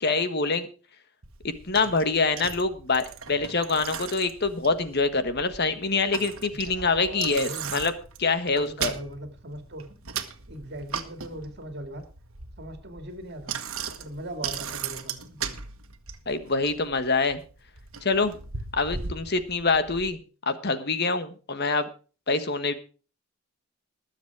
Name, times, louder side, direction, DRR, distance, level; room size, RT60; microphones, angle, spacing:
voice 1, 0.0-0.7 1.4-7.9 8.2-8.9 16.3-17.4 18.0-18.3 18.7-20.2 20.5-21.9 22.3-22.7, left 4 dB, 50° left, 10 dB, 1.4 m, -25 dB
Bicycle, 1.2-20.1, right 6 dB, 75° right, 1.4 m, -38 dB
voice 2, 6.5-7.8 8.5-10.0 10.5-12.0 12.6-13.6 14.0-15.6, right 1 dB, 50° right, 6 dB, 2.3 m, -39 dB
20.0 x 7.4 x 4.8 m, 0.36 s
head